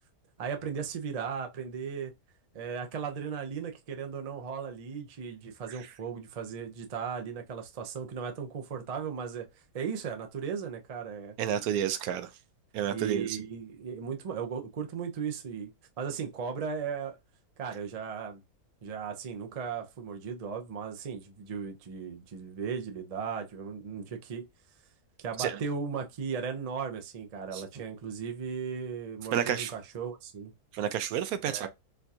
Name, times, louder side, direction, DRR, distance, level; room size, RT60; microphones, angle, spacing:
voice 1, 0.4-2.1 2.5-9.5 9.7-11.3 12.9-15.7 16.0-17.2 17.6-18.4 18.8-24.5 25.2-30.5 31.5-31.7, right 6 dB, 60° right, 0.4 m, -36 dB
voice 2, 11.4-12.3 12.7-13.4 25.4-25.6 27.5-27.6 29.3-29.7 30.7-31.7, right 10 dB, 80° right, 1.1 m, -30 dB
4.2 x 2.4 x 2.7 m
omnidirectional pair, 1.6 m